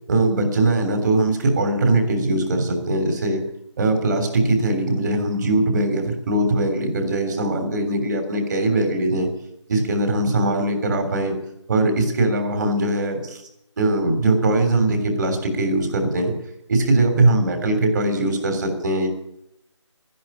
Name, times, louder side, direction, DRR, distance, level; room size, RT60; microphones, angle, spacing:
voice 1, 0.1-3.4 3.8-9.3 9.7-11.3 11.7-13.4 13.8-16.3 16.7-19.1, right 2 dB, 40° right, 6 dB, 3.4 m, -21 dB
12.5 x 11.0 x 9.9 m, 0.77 s
figure-of-eight pair, 165°, 16 cm